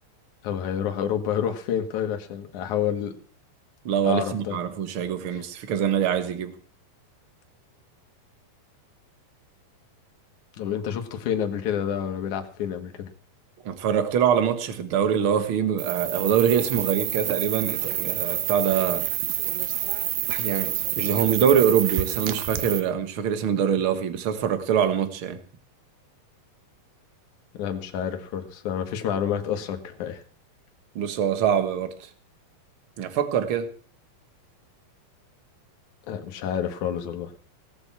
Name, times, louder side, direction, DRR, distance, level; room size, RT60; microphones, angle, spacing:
voice 1, 0.4-3.1 4.0-4.6 5.3-5.4 10.6-13.1 27.5-30.2 36.1-37.3, left 9 dB, 60° left, 2.9 m, -29 dB
voice 2, 3.8-6.5 13.6-19.0 20.3-25.4 30.9-32.1 33.0-33.7, right 8 dB, 55° right, 1.6 m, -24 dB
sound 1, 15.8-22.8, right 13 dB, 75° right, 2.6 m, -28 dB
18.0 x 8.2 x 7.4 m
omnidirectional pair, 4.2 m